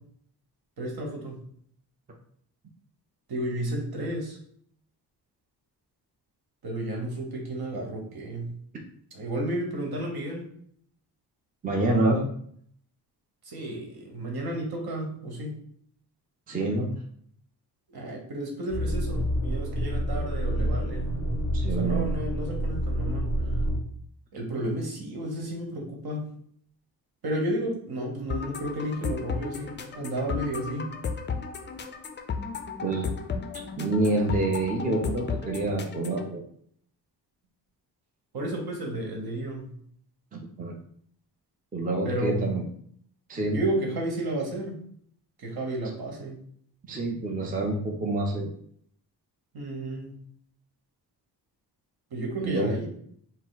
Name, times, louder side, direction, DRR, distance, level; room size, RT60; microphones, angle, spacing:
voice 1, 0.8-1.4 3.3-4.4 6.6-8.5 9.1-10.4 13.4-15.5 17.9-21.2 21.8-23.3 24.3-26.2 27.2-30.9 38.3-39.7 42.0-42.5 43.5-44.8 45.4-46.4 49.5-50.2 52.1-52.9, right 1 dB, 65° right, 0 dB, 1.3 m, -32 dB
voice 2, 11.6-12.2 16.5-16.9 21.5-22.1 32.8-33.1 33.3-33.4 33.8-36.4 40.3-40.8 41.7-42.6 43.3-43.6 46.9-48.5 52.4-52.7, right 2 dB, 20° right, 1 dB, 0.5 m, -27 dB
sound 1, 18.7-23.8, equal, 40° right, 1.7 m, -28 dB
sound 2, 28.3-36.3, left 5 dB, 30° left, 0.4 m, -34 dB
4.7 x 2.0 x 3.9 m, 0.64 s
wide cardioid pair, 130°, 40 cm